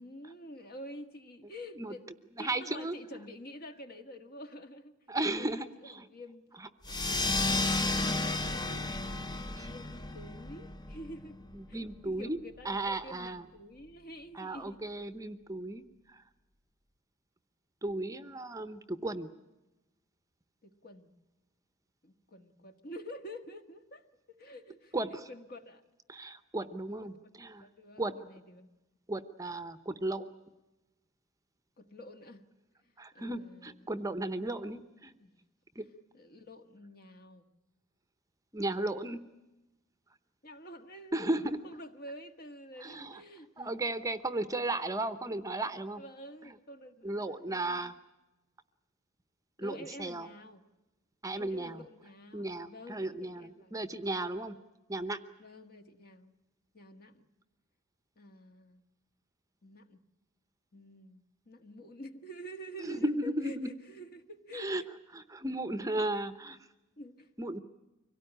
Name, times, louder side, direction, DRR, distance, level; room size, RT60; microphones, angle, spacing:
voice 1, 0.0-2.0 2.4-4.9 5.3-6.5 6.8-8.9 9.5-11.4 11.7-11.8 12.0-14.9 20.6-21.1 22.0-25.8 27.0-27.1 27.4-28.7 31.8-32.4 33.1-33.9 35.2-35.4 35.8-35.9 36.1-37.4 40.4-43.8 46.0-47.9 49.6-50.6 51.3-54.3 55.4-56.3 56.7-57.3 58.2-58.8 59.6-60.0 60.7-64.9 67.0-67.3, equal, 45° left, 7 dB, 1.6 m, -49 dB
voice 2, 2.4-3.0 5.1-6.1 6.6-6.7 9.1-9.2 9.6-9.7 11.5-12.4 12.6-13.4 14.3-15.8 16.1-16.2 17.8-19.3 24.9-25.3 26.1-27.7 28.0-28.1 29.1-30.2 33.0-35.1 35.8-35.9 38.5-39.2 41.1-41.6 42.8-43.2 43.6-46.0 46.4-46.5 47.0-47.9 49.6-50.3 51.2-51.8 52.3-54.6 54.9-55.2 62.8-63.7 64.5-64.8 65.1-66.6 67.4-67.6, right 2 dB, 15° right, 11 dB, 0.8 m, -35 dB
sound 1, 6.8-11.9, left 2 dB, 20° left, 0.8 m, -33 dB
25.0 x 17.5 x 9.9 m, 1.0 s
head